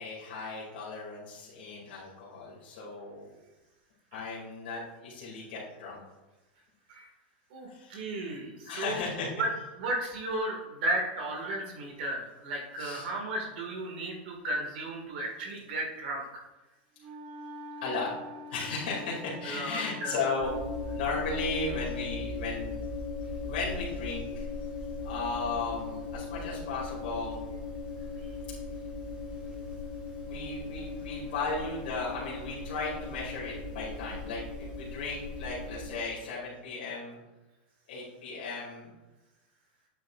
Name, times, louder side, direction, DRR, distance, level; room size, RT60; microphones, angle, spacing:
voice 1, 0.0-3.3 4.1-6.0 7.7-7.9 8.6-9.3 12.8-13.1 17.8-18.2 18.5-20.6 20.9-22.8 23.4-24.5 25.0-27.4 30.2-37.2 37.9-38.9, left 3 dB, 75° left, -6 dB, 2.3 m, -36 dB
voice 2, 7.5-9.0 9.4-9.5 9.8-16.4 19.4-20.2, right 1 dB, 70° right, 0 dB, 1.8 m, -34 dB
Wind instrument woodwind instrument, 17.0-22.4, left 2 dB, 50° right, 1.3 m, -45 dB
sound 1, 20.4-35.9, left 3 dB, 20° right, 1.8 m, -38 dB
8.1 x 7.6 x 2.4 m, 1.1 s
supercardioid pair, 120°, 6 cm